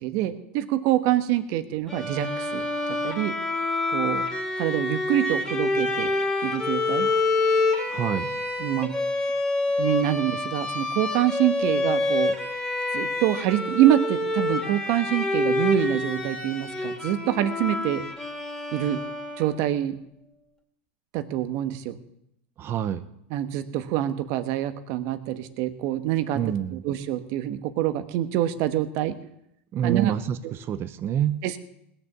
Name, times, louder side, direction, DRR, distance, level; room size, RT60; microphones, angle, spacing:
voice 1, 0.0-3.4 3.9-4.3 4.6-6.1 6.4-7.1 8.6-8.9 9.8-12.3 12.9-18.0 18.7-19.0 19.4-20.0 21.1-22.0 23.3-29.2 29.8-30.1 30.4-30.5 31.4-31.6, right 13 dB, 55° right, 10 dB, 1.3 m, -26 dB
Bowed string instrument, 1.9-19.7, left 2 dB, 5° left, 2.7 m, -27 dB
voice 2, 7.9-8.3 22.6-23.0 26.3-26.8 29.7-31.4, right 10 dB, 35° right, 11 dB, 0.8 m, -27 dB
19.5 x 6.9 x 7.5 m, 0.79 s
hypercardioid pair, 110°, 7 cm